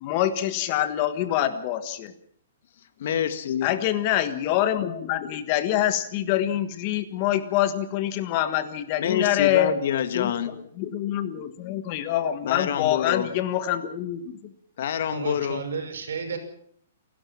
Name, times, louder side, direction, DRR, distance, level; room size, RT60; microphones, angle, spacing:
voice 1, 0.0-2.1 3.6-9.8 10.1-14.4, left 12 dB, 30° left, 12 dB, 1.4 m, -25 dB
voice 2, 3.0-3.7 9.0-10.5 12.4-13.3 14.8-15.7, left 9 dB, 50° left, 11 dB, 1.9 m, -27 dB
voice 3, 15.1-16.4, right 5 dB, 85° right, 8 dB, 6.1 m, -32 dB
29.0 x 12.0 x 7.4 m, 0.64 s
hypercardioid pair, 170°, 0 cm